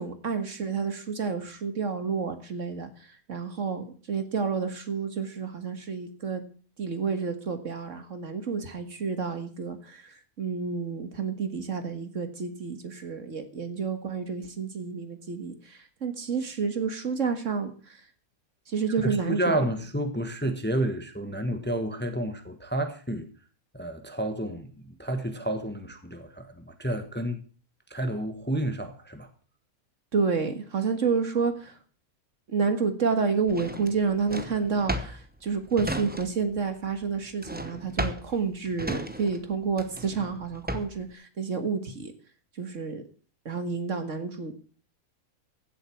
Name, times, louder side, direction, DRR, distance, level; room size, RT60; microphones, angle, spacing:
voice 1, 0.0-2.9 3.3-6.4 6.8-18.0 18.7-19.6 30.1-31.8 32.5-42.1 42.6-43.0 43.5-44.5, right 5 dB, 55° right, 2.0 m, -30 dB
voice 2, 19.0-23.3 23.7-27.4 27.9-29.3, right 1 dB, 5° left, 1.2 m, -30 dB
Drawer open or close, 33.5-36.6 36.8-41.1, equal, 10° right, 0.8 m, -35 dB
15.5 x 7.9 x 6.1 m
omnidirectional pair, 1.6 m